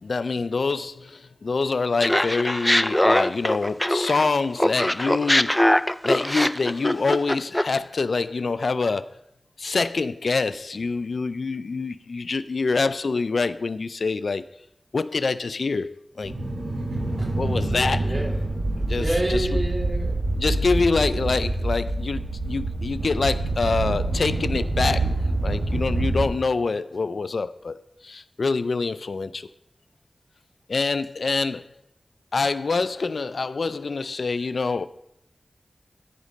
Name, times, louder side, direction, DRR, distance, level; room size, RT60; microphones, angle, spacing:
voice 1, 0.0-5.8 6.0-9.2 9.6-14.5 14.9-16.3 17.4-18.1 18.8-19.5 20.4-29.5 30.7-31.6 32.3-34.9, left 4 dB, 80° left, 0.4 m, -26 dB
Laughter, 2.0-4.3 4.6-7.8, left 1 dB, 10° left, 0.4 m, -22 dB
sound 1, 16.2-26.3, right 2 dB, 90° right, 3.5 m, -26 dB
voice 2, 16.9-17.3 17.8-18.4 18.7-20.2, right 1 dB, 40° right, 3.3 m, -29 dB
13.5 x 5.1 x 5.2 m
wide cardioid pair, 55°, 0 cm